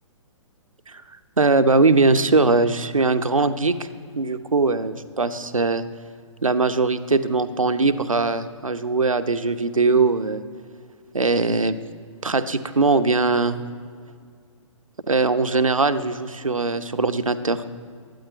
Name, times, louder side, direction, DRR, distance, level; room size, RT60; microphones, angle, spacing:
voice 1, 1.4-3.7 4.2-5.8 6.4-10.4 11.1-11.8 12.2-13.6 15.1-17.6, right 3 dB, 80° right, 11 dB, 0.9 m, -20 dB
13.0 x 9.4 x 9.4 m, 2.2 s
figure-of-eight pair, 125°, 17 cm